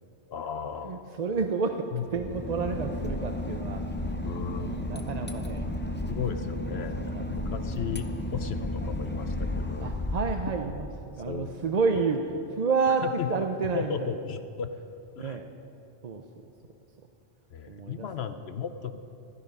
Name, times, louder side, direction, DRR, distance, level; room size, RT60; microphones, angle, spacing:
voice 1, 0.3-1.1 1.4-1.5 1.9-2.1 4.2-5.0 6.1-9.9 10.6-10.8 11.3-11.5 12.9-13.4 13.7-14.7 15.1-15.4 17.5-19.0, left 7 dB, 70° left, 9 dB, 0.9 m, -35 dB
voice 2, 0.8-3.8 4.5-6.1 7.0-7.2 9.8-10.8 11.1-12.2 12.6-13.9 15.2-15.4 16.0-16.2 17.7-18.1, right 5 dB, 45° right, 5 dB, 0.7 m, -30 dB
Boat Water vehicle / Engine, 2.1-11.1, left 1 dB, 15° left, 0.6 m, -33 dB
15.5 x 12.5 x 5.4 m, 2.6 s
omnidirectional pair, 1.1 m